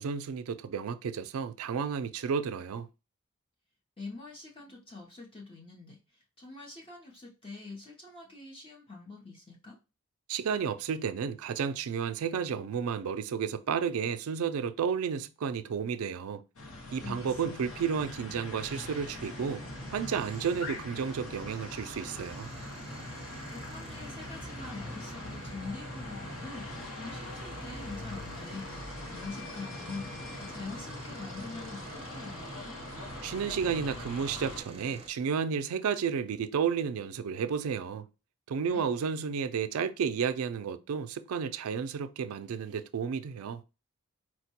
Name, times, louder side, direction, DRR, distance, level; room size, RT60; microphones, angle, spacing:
voice 1, 0.0-2.9 10.3-16.4 16.9-19.6 19.9-22.5 33.2-38.1 38.5-43.6, right 6 dB, 75° right, 0.3 m, -32 dB
voice 2, 4.0-9.8 17.0-17.6 23.5-26.7 27.0-32.8 38.6-38.8, left 3 dB, 25° left, 0.6 m, -45 dB
sound 1, 16.6-34.6, left 2 dB, 80° left, 1.0 m, -42 dB
sound 2, 18.6-35.1, right 2 dB, 25° right, 0.5 m, -48 dB
4.4 x 2.1 x 2.8 m
head